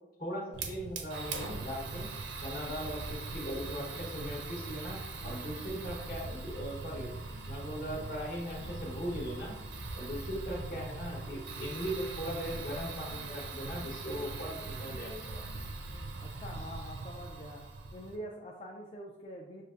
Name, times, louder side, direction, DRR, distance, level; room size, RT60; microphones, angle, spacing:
voice 1, 0.2-2.1 2.4-7.2 7.5-9.6 9.9-15.4, equal, 50° left, -2 dB, 1.0 m, -39 dB
Fire, 0.5-18.2, right 3 dB, 75° right, 0.5 m, -41 dB
sound 1, 2.8-7.7 7.9-15.1 15.4-16.0, equal, 80° left, 1.2 m, -51 dB
voice 2, 16.2-17.6 17.9-19.6, equal, 30° left, -2 dB, 0.3 m, -45 dB
6.3 x 2.4 x 2.4 m, 1.1 s
head